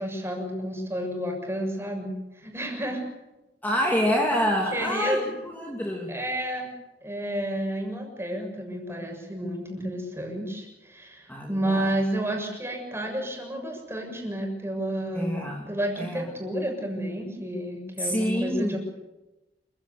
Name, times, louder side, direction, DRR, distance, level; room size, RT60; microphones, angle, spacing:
voice 1, 0.0-3.0 3.9-4.0 4.7-5.3 6.1-6.7 7.0-18.8, right 1 dB, 15° right, 2 dB, 7.0 m, -31 dB
voice 2, 3.6-6.1 11.3-11.8 15.1-16.4 18.0-18.8, equal, 10° left, -1 dB, 3.0 m, -27 dB
28.0 x 16.5 x 8.5 m, 1.0 s
head